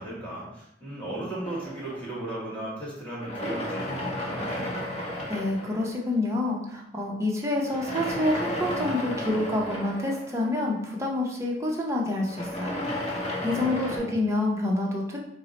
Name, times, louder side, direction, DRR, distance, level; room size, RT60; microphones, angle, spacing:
voice 1, 0.0-4.7 13.1-14.2, right 1 dB, 10° left, -6 dB, 1.3 m, -36 dB
sound 1, 1.4-2.7 3.2-6.3 7.6-11.1 12.2-14.0, left 1 dB, 35° left, 0.7 m, -33 dB
voice 2, 5.3-12.8 13.4-15.2, left 2 dB, 15° right, -2 dB, 0.6 m, -27 dB
4.4 x 2.1 x 3.9 m, 0.78 s
head